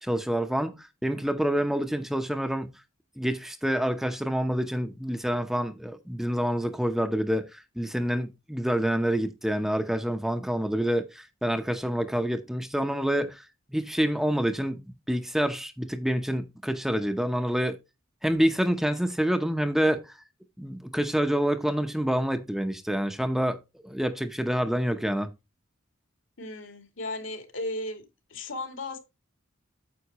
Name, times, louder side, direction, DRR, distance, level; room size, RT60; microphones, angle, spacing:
voice 1, 0.0-2.7 3.2-13.4 13.7-17.8 18.2-20.1 20.6-25.3, equal, ahead, 0.8 m, -27 dB
voice 2, 26.4-28.0 28.3-29.0, left 2 dB, 75° left, 2.4 m, -35 dB
9.5 x 7.6 x 3.0 m
head